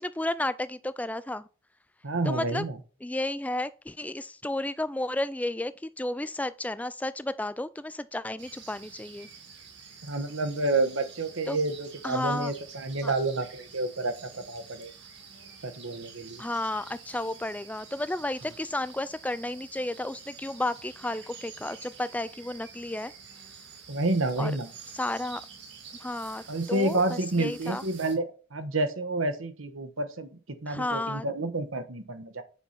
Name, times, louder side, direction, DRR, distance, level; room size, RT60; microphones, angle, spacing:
voice 1, 0.0-1.4 2.2-2.6 3.0-5.7 6.0-9.3 11.5-11.6 12.0-12.5 13.0-13.1 16.4-23.1 24.4-24.5 24.9-25.4 26.0-27.8 30.7-31.3, left 1 dB, 5° left, 0.3 m, -32 dB
voice 2, 2.0-2.8 10.0-14.9 15.6-16.4 23.9-24.7 26.5-32.4, right 2 dB, 75° right, 1.3 m, -29 dB
sound 1, 8.4-28.2, right 6 dB, 55° right, 2.1 m, -48 dB
8.0 x 5.8 x 4.2 m
head